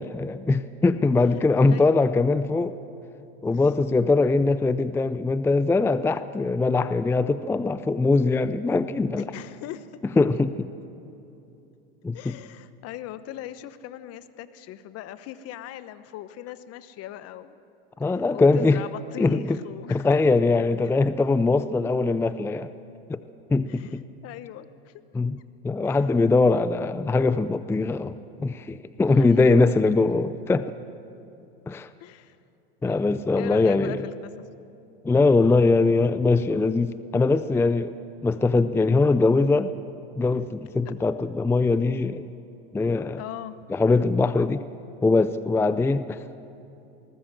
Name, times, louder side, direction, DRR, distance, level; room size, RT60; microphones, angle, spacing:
voice 1, 0.0-2.8 3.4-9.2 10.2-10.7 12.0-12.4 18.0-18.8 19.2-19.6 19.9-22.7 23.1-23.2 23.5-24.0 25.1-25.4 25.6-30.7 31.7-31.9 32.8-34.1 35.0-37.9 38.2-39.7 40.2-42.2 42.7-43.2 43.7-44.6 45.0-46.2, left 3 dB, 10° left, 14 dB, 0.5 m, -22 dB
voice 2, 1.6-2.0 9.2-9.9 12.1-17.6 18.0-20.3 23.7-25.0 25.8-26.0 29.1-29.7 32.0-32.4 32.8-34.3 40.8-40.9 43.2-43.6, left 12 dB, 50° left, 13 dB, 1.1 m, -40 dB
21.0 x 19.0 x 7.5 m, 2.8 s
hypercardioid pair, 100°, 31 cm